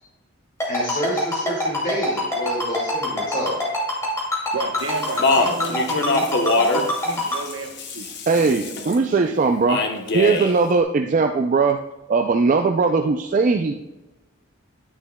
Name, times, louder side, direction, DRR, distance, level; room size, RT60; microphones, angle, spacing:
Ringtone, 0.6-7.4, left 2 dB, 15° left, 2.4 m, -24 dB
voice 1, 0.7-3.5, equal, 40° left, -5 dB, 2.0 m, -28 dB
voice 2, 4.5-9.4, right 2 dB, 70° right, 4 dB, 1.0 m, -32 dB
Speech, 4.8-9.0 9.7-10.5, left 3 dB, 55° left, 0.9 m, -24 dB
voice 3, 8.3-9.8 10.1-11.8 12.1-13.7, right 4 dB, 40° right, 5 dB, 0.3 m, -19 dB
10.0 x 9.8 x 2.2 m, 1.0 s
head